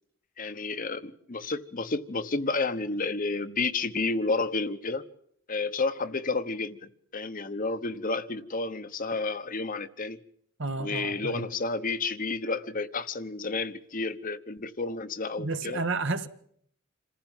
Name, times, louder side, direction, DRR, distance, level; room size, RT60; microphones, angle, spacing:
voice 1, 0.4-5.0 5.5-10.2 10.8-15.8, left 3 dB, 40° left, 1.0 m, -31 dB
voice 2, 10.6-11.5 15.4-16.3, right 3 dB, 60° right, 1.4 m, -31 dB
27.5 x 15.5 x 9.0 m
head